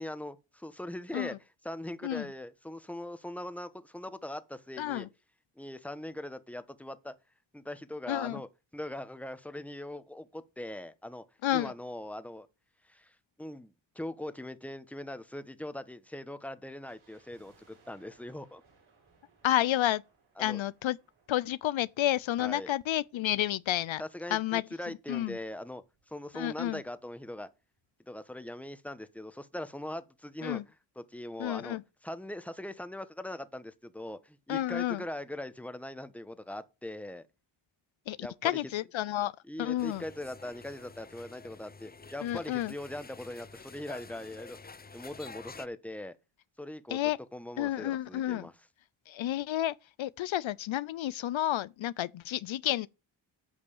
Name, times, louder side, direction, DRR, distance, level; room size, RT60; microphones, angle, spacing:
voice 1, 0.0-1.4 1.6-5.1 5.6-7.1 7.5-8.5 8.7-11.2 11.5-12.5 12.8-18.6 20.4-20.6 22.4-22.7 24.0-27.5 28.0-30.6 31.0-31.8 32.0-37.2 38.2-38.6 39.5-44.6 44.9-46.1 46.6-47.0 47.3-48.5, left 1 dB, 5° left, 1.2 m, -41 dB
voice 2, 4.8-5.1 8.1-8.4 11.4-11.7 19.4-20.0 20.4-21.0 21.3-24.0 24.3-24.6 25.1-25.4 26.3-26.8 30.4-30.6 31.4-31.8 34.5-35.0 38.1-39.3 39.6-40.0 42.2-42.7 46.9-47.2 47.6-48.5 49.1-52.9, left 13 dB, 70° left, 0.6 m, -30 dB
sound 1, 16.8-24.1 24.3-24.4 25.1-26.9 27.2-27.3 27.5-27.8 28.3-28.4, right 4 dB, 80° right, 4.9 m, -67 dB
sound 2, 39.8-45.7, left 4 dB, 20° left, 0.6 m, -49 dB
8.5 x 5.3 x 7.1 m
cardioid pair, 50°, 49 cm